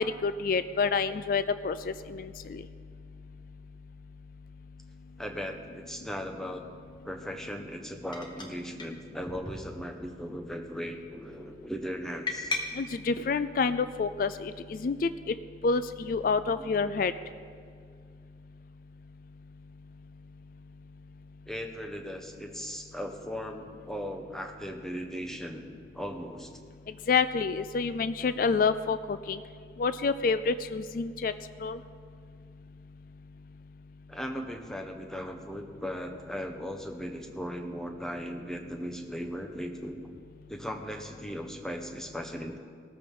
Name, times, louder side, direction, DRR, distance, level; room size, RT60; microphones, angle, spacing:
voice 1, 0.0-2.7 12.7-17.1 26.9-29.4 29.8-31.8, left 4 dB, 50° left, 13 dB, 0.3 m, -28 dB
sound 1, 5.1-5.2 6.8-7.0 8.1-8.5 8.8-8.9 9.2-10.1 10.4-10.8 12.3-12.6, left 3 dB, 25° left, 1.3 m, -37 dB
voice 2, 5.2-6.7 7.0-12.6 16.6-16.7 21.5-26.5 34.1-40.0 40.5-42.6, equal, 5° left, 4 dB, 0.9 m, -38 dB
18.5 x 13.5 x 3.8 m, 2.2 s
head